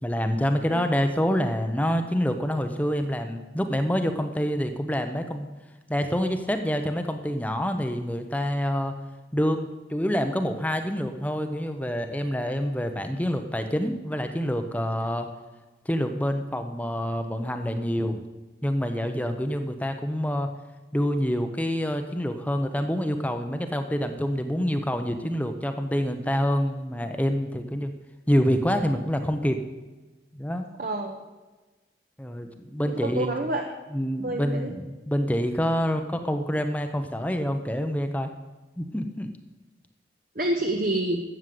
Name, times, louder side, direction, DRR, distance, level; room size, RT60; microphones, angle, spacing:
voice 1, 0.0-5.5 5.9-8.9 9.3-15.3 15.8-18.2 18.6-20.5 20.9-27.9 28.3-29.6 30.3-30.7 32.2-33.3 33.9-38.3 38.8-39.3, equal, 10° left, 7 dB, 0.8 m, -27 dB
voice 2, 30.8-31.2 33.0-33.6 34.2-34.7 40.3-41.2, right 1 dB, 50° right, 2 dB, 1.1 m, -27 dB
12.5 x 8.2 x 7.7 m, 1.2 s
head